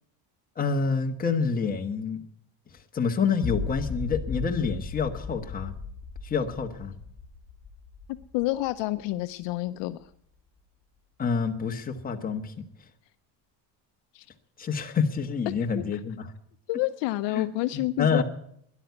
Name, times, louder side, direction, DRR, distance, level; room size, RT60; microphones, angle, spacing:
voice 1, 0.6-2.2 2.9-5.7 6.2-7.0 11.2-12.5 14.6-16.3 17.3-17.5 17.7-18.2, left 5 dB, 20° left, 3 dB, 1.4 m, -27 dB
sound 1, 3.4-9.5, left 4 dB, 35° left, 5.1 m, -36 dB
voice 2, 8.3-10.0 14.1-14.2 15.7-15.8 16.7-18.2, left 17 dB, 60° left, 11 dB, 0.7 m, -28 dB
13.0 x 11.0 x 9.5 m, 0.70 s
cardioid pair, 150°, 48 cm